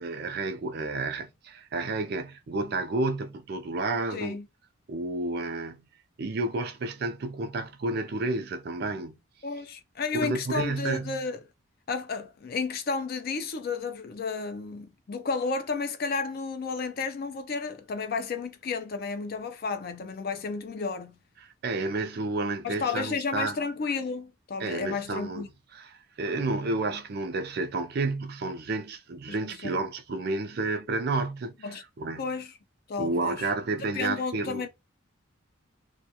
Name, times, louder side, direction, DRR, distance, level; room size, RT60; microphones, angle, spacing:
voice 1, 0.0-4.4 4.9-5.9 6.2-9.2 10.1-11.2 21.4-23.6 24.6-25.5 25.7-25.9 26.2-31.5 32.0-32.2 33.0-34.6, right 3 dB, 50° right, 0.4 m, -31 dB
voice 2, 4.1-4.5 9.4-11.4 11.9-21.2 22.6-25.5 29.3-29.4 29.6-29.8 31.6-31.8 32.2-32.5 32.9-33.5 33.9-34.7, left 4 dB, 45° left, 0.3 m, -32 dB
2.3 x 2.2 x 2.7 m
head